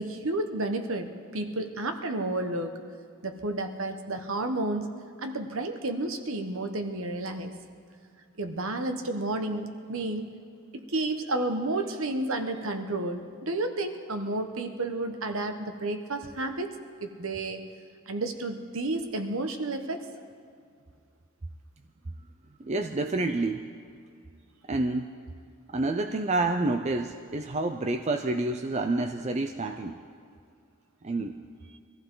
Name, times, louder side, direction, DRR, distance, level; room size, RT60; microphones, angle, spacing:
voice 1, 0.0-2.8 3.2-4.9 5.2-7.5 8.4-10.3 10.7-16.7 17.0-17.6 18.1-20.1, right 2 dB, 60° right, 6 dB, 1.2 m, -31 dB
voice 2, 22.6-23.7 24.7-25.1 25.7-30.0 31.0-31.3, right 2 dB, 30° right, 6 dB, 0.5 m, -28 dB
23.5 x 14.5 x 3.9 m, 2.2 s
head